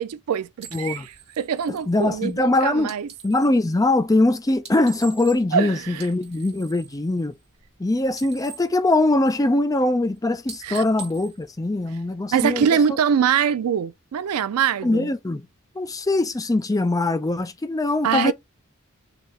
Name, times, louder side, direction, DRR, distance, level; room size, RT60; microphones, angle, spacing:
voice 1, 0.0-3.1 5.5-6.1 10.6-10.8 12.3-15.1 18.0-18.3, right 7 dB, 85° right, 0.4 m, -23 dB
sound 1, 0.6-3.6 4.5-5.6 5.9-7.8 8.0-9.6 10.0-10.2 10.4-12.3, right 5 dB, 30° right, 1.8 m, -44 dB
voice 2, 0.7-1.1 1.9-2.9 3.2-7.3 7.8-12.7 14.8-15.5 15.8-18.3, left 2 dB, 15° left, 0.5 m, -22 dB
4.1 x 2.8 x 3.2 m
head